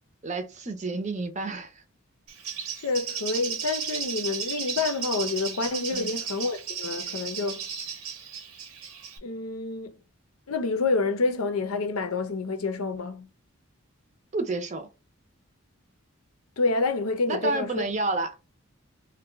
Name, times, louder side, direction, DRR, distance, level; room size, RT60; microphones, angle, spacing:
voice 1, 0.2-1.8 5.9-6.1 14.3-14.9 17.3-18.3, right 2 dB, 35° right, 0.5 m, -30 dB
Bird, 2.3-9.2, right 7 dB, 85° right, 0.8 m, -34 dB
voice 2, 2.8-7.6 9.2-9.9 10.5-13.3 16.6-17.9, left 3 dB, 85° left, 0.6 m, -28 dB
2.6 x 2.2 x 3.7 m
head